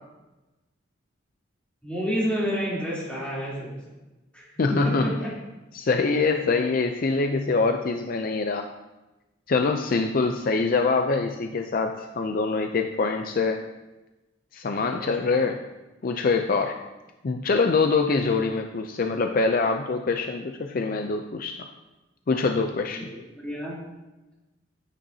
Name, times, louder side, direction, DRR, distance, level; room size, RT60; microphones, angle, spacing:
voice 1, 1.8-3.9 4.3-5.3 14.8-15.1 15.4-15.5 22.9-23.8, equal, 5° left, -7 dB, 3.2 m, -30 dB
voice 2, 4.6-5.1 5.7-8.7 9.5-13.6 14.5-15.6 16.0-16.8 17.2-21.6 22.3-23.1, left 4 dB, 50° left, 5 dB, 0.4 m, -24 dB
9.9 x 9.0 x 2.8 m, 1.1 s
head